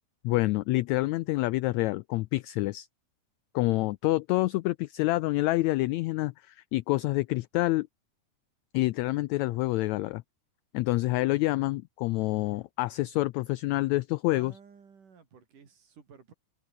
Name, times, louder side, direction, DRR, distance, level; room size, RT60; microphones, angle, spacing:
voice 1, 0.2-2.9 3.5-7.9 8.7-10.2 10.7-14.5, left 19 dB, 80° left, 1.7 m, -27 dB
voice 2, 14.3-16.3, right 6 dB, 80° right, 5.4 m, -53 dB
omnidirectional pair, 3.6 m